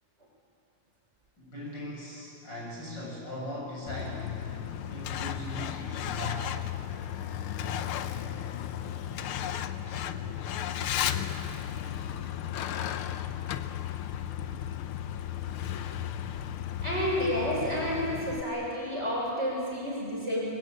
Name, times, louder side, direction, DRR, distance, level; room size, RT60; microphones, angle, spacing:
voice 1, 1.4-4.5 4.9-6.6, left 1 dB, 35° left, -5 dB, 7.9 m, -39 dB
Truck, 3.9-18.4, left 10 dB, 80° left, 1.2 m, -34 dB
voice 2, 16.8-20.5, equal, 20° right, -5 dB, 6.7 m, -30 dB
25.5 x 22.5 x 9.0 m, 2.6 s
omnidirectional pair, 3.5 m